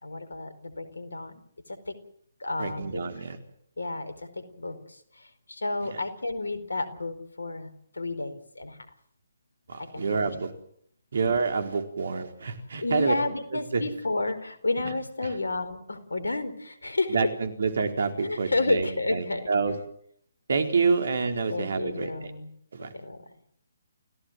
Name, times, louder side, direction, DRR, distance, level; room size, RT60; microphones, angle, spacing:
voice 1, 0.0-1.4 1.9-2.0 2.4-3.0 3.8-4.8 5.5-7.7 8.0-8.8 9.8-10.3 12.8-17.3 18.2-19.5 21.5-22.5 22.9-23.2, left 2 dB, 75° left, 10 dB, 4.5 m, -31 dB
voice 2, 2.6-3.4 5.8-6.0 9.7-10.5 11.1-13.1 13.5-13.8 14.8-14.9 15.2-15.3 17.1-19.7 20.5-22.3 22.7-22.9, right 4 dB, 60° right, 6 dB, 4.1 m, -28 dB
29.0 x 17.0 x 7.7 m, 0.65 s
figure-of-eight pair, 135°, 0 cm